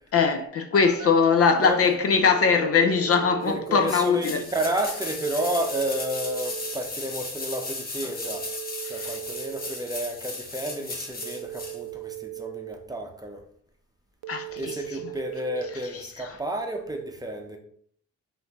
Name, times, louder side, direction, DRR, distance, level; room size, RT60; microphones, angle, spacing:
voice 1, 0.1-4.4 8.8-9.1 14.3-14.7, left 5 dB, 50° left, 0.6 m, -21 dB
Telephone, 0.7-1.7 2.2-3.7 5.2-6.7 8.2-9.7 11.2-12.7 14.2-15.7, right 21 dB, 70° right, 0.5 m, -38 dB
voice 2, 1.6-1.9 3.4-8.5 8.9-13.4 14.6-17.6, right 1 dB, 10° right, 0.7 m, -31 dB
sound 1, 3.9-11.8 12.1-12.2, left 3 dB, 30° left, 1.0 m, -36 dB
5.5 x 2.7 x 3.0 m
cardioid pair, 90°, 30 cm